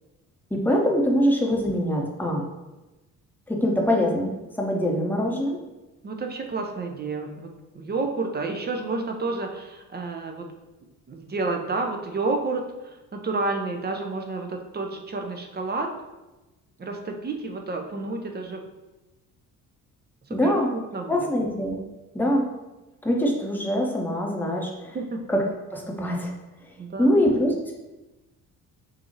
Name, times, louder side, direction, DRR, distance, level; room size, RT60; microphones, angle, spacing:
voice 1, 0.5-2.4 3.5-5.6 20.3-20.7 21.1-21.8 22.1-22.5 23.0-25.0 25.3-25.4 25.7-26.3 26.6-26.7 27.0-27.7, equal, 5° left, -1 dB, 1.0 m, -23 dB
voice 2, 6.0-10.5 11.1-15.9 16.8-18.6 20.3-21.3 24.9-25.2 26.8-27.3, right 3 dB, 20° right, 3 dB, 0.7 m, -30 dB
6.3 x 2.7 x 2.9 m, 1.1 s
figure-of-eight pair, 50°, 45 cm